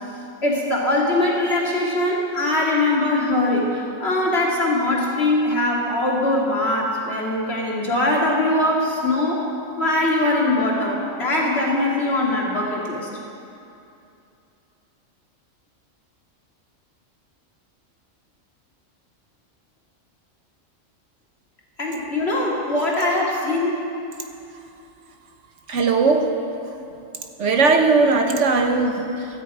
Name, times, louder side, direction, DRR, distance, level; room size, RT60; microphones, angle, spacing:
voice 1, 0.4-9.4 9.8-13.1 21.8-23.8, left 1 dB, 50° left, -3 dB, 2.8 m, -21 dB
voice 2, 25.7-26.3 27.4-29.3, right 4 dB, 65° right, 4 dB, 1.3 m, -18 dB
16.5 x 13.5 x 4.9 m, 2.7 s
omnidirectional pair, 1.4 m